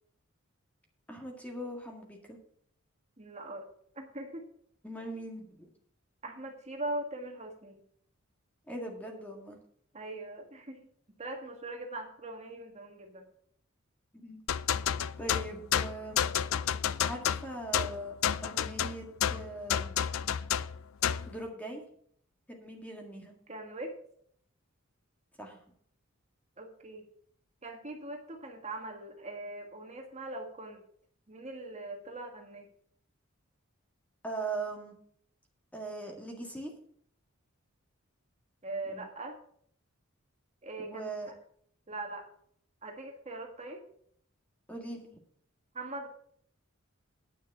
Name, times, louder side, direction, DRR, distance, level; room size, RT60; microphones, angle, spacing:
voice 1, 1.1-2.4 4.8-5.7 8.7-9.6 14.1-14.4 15.2-16.3 17.0-18.2 18.4-19.9 21.3-21.8 22.5-23.3 25.4-25.6 34.2-35.0 35.7-36.7 38.9-39.1 40.8-41.3 44.7-45.1, right 2 dB, 5° left, 1 dB, 1.8 m, -40 dB
voice 2, 3.2-3.7 4.0-4.5 6.2-7.8 9.9-10.8 11.2-13.3 23.5-23.9 26.6-27.0 27.6-30.8 31.3-32.7 38.6-39.4 40.6-41.3 41.9-42.3 42.8-43.8 45.7-46.1, right 2 dB, 30° right, 2 dB, 1.7 m, -41 dB
sound 1, 14.5-21.3, left 9 dB, 70° left, 0.4 m, -30 dB
9.7 x 6.5 x 7.2 m, 0.62 s
head